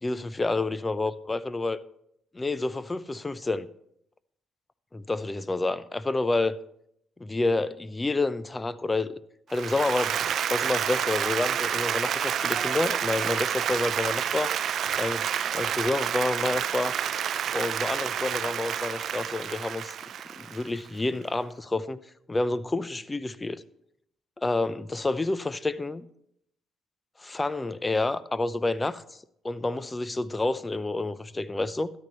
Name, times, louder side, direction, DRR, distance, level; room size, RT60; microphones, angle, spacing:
voice 1, 0.0-1.8 2.3-3.7 4.9-6.6 7.2-9.2 9.5-14.5 15.0-15.3 15.5-16.9 17.5-19.9 20.4-22.0 22.3-23.6 24.4-26.1 27.2-29.0 29.4-31.9, left 2 dB, 25° left, 0.7 m, -29 dB
Applause, 9.5-20.9, right 9 dB, 65° right, 0.5 m, -29 dB
13.0 x 11.0 x 3.1 m
hypercardioid pair, 50°, 0 cm